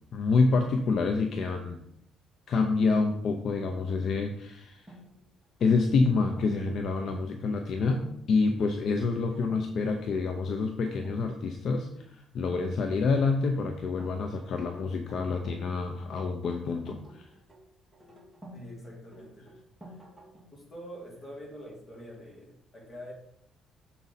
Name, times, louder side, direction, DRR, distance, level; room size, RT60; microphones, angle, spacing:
voice 1, 0.1-1.8 2.5-4.9 5.6-17.3, left 4 dB, 50° left, 5 dB, 0.6 m, -27 dB
sound 1, 4.9-6.7 7.9-8.2 8.6-8.9 9.3-9.7 10.0-10.4 10.8-11.2 12.4-13.2 14.0-15.7 16.0-18.6 19.1-20.6, equal, 5° right, 2.5 m, -51 dB
voice 2, 18.5-19.5 20.5-23.1, equal, 25° left, -2 dB, 2.5 m, -45 dB
7.0 x 5.1 x 4.2 m, 0.73 s
cardioid pair, 160°, 0 cm